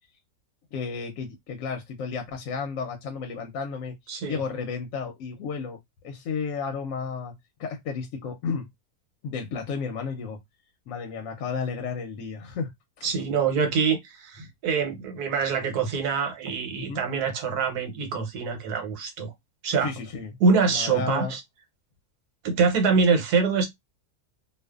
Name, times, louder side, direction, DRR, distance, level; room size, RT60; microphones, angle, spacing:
voice 1, 0.7-4.0 4.3-5.8 6.0-7.3 7.6-8.7 9.2-10.4 10.9-13.1 16.8-17.0 19.8-20.3 20.7-21.3, left 5 dB, 70° left, 0.9 m, -32 dB
voice 2, 4.1-4.4 13.0-19.3 19.6-19.9 20.4-21.4 22.4-23.7, right 5 dB, 85° right, 1.3 m, -24 dB
2.5 x 2.4 x 2.3 m
omnidirectional pair, 1.6 m